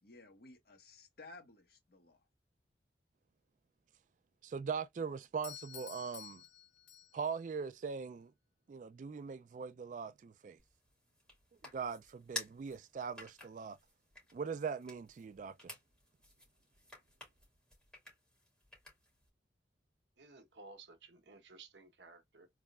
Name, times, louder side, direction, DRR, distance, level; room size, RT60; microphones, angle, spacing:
voice 1, 0.0-2.2, left 3 dB, 60° left, 1.3 m, -56 dB
voice 2, 4.4-6.4 7.1-8.3 8.7-10.6 11.7-13.8 14.3-15.8, right 6 dB, 45° right, 0.3 m, -41 dB
Doorbell, 5.4-7.4, left 12 dB, 80° left, 0.4 m, -52 dB
sound 1, 10.6-19.3, left 1 dB, 5° left, 2.9 m, -52 dB
voice 3, 20.2-22.5, right 3 dB, 75° right, 1.0 m, -56 dB
4.0 x 3.6 x 2.3 m
head